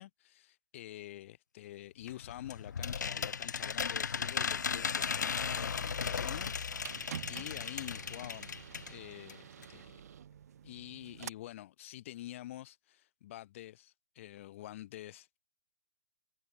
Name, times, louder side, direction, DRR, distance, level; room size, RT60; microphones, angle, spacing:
voice 1, 0.0-6.5 7.3-10.1 10.6-15.4, left 14 dB, 40° left, 1.7 m, -47 dB
sound 1, 2.1-9.0 9.3-9.4 9.6-9.7, left 6 dB, 65° left, 1.0 m, -36 dB
sound 2, 5.3-11.3, right 9 dB, 55° right, 0.6 m, -49 dB
figure-of-eight pair, 125°, 10 cm